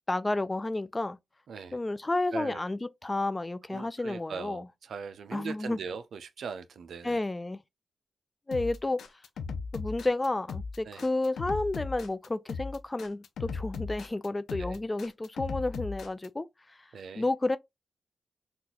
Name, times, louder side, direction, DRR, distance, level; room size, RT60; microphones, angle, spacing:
voice 1, 0.1-1.2 1.7-4.7 5.3-5.8 7.0-7.6 8.5-9.0 9.7-16.8 17.2-17.6, left 2 dB, 25° left, 0.3 m, -31 dB
voice 2, 2.3-2.6 3.7-7.2 10.9-11.0 14.6-14.8 16.9-17.2, right 6 dB, 75° right, 0.4 m, -40 dB
sound 1, 8.5-16.3, left 5 dB, 85° left, 0.5 m, -37 dB
3.8 x 2.4 x 2.9 m
cardioid pair, 50°, 0 cm